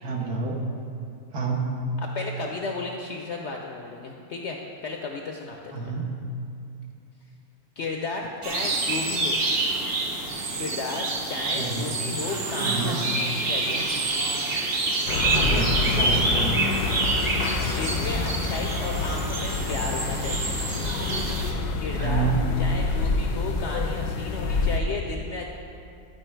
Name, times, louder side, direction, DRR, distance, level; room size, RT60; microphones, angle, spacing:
voice 1, 0.0-0.7 1.3-1.9 5.7-6.2 11.5-12.0 12.6-13.0 15.3-16.6 21.9-22.5, right 4 dB, 75° right, -2 dB, 1.7 m, -29 dB
voice 2, 2.0-5.9 7.8-9.4 10.6-13.9 15.4-15.7 17.7-20.6 21.8-22.3 22.6-25.5, left 3 dB, 65° left, 1 dB, 0.7 m, -34 dB
sound 1, 8.4-21.5, right 3 dB, 45° right, 1.0 m, -27 dB
sound 2, 15.1-24.8, left 3 dB, 85° left, 1.2 m, -27 dB
12.0 x 4.7 x 4.4 m, 2.5 s
omnidirectional pair, 1.7 m